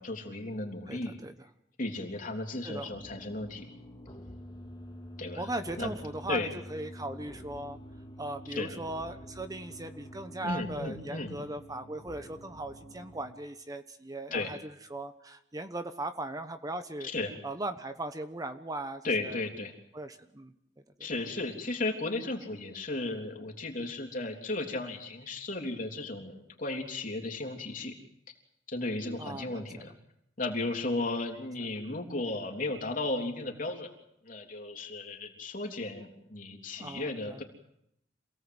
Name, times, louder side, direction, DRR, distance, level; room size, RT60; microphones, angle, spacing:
voice 1, 0.0-1.2 1.8-3.6 5.2-5.5 5.8-5.9 6.3-6.5 8.5-8.7 10.4-11.3 14.3-14.6 17.0-17.3 19.0-19.7 21.0-27.9 28.7-29.9 30.4-33.9 34.3-37.4, left 2 dB, 45° left, 3 dB, 3.5 m, -35 dB
voice 2, 0.9-1.3 2.6-3.0 5.4-7.8 8.2-17.1 17.4-19.4 19.9-20.5 21.0-21.1 29.2-29.8 36.8-37.4, right 2 dB, 20° right, 9 dB, 1.0 m, -38 dB
sound 1, 2.9-13.3, equal, 25° left, 2.3 m, -47 dB
27.5 x 18.0 x 8.0 m, 0.77 s
head